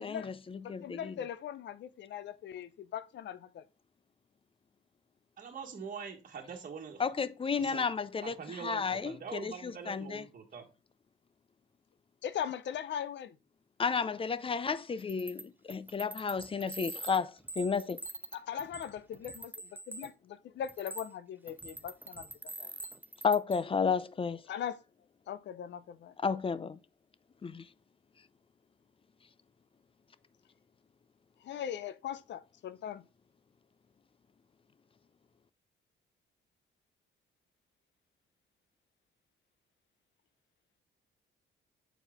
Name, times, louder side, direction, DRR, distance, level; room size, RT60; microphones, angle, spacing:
voice 1, 0.0-1.1 7.0-8.4 8.6-10.2 13.8-18.0 23.2-24.4 26.2-26.8 27.4-27.7, left 5 dB, 25° left, 0.5 m, -32 dB
voice 2, 0.6-3.6 12.2-13.4 18.3-19.5 19.9-22.7 24.5-24.8 25.3-26.1 31.4-33.0, left 9 dB, 65° left, 0.7 m, -40 dB
voice 3, 5.4-7.0 7.6-7.8 8.2-10.6, right 6 dB, 45° right, 1.6 m, -44 dB
sound 1, 15.0-15.4 15.7-20.1 20.6-21.1 21.5-23.6, right 2 dB, 10° right, 0.7 m, -44 dB
7.1 x 4.5 x 3.6 m
cardioid pair, 90°, 20 cm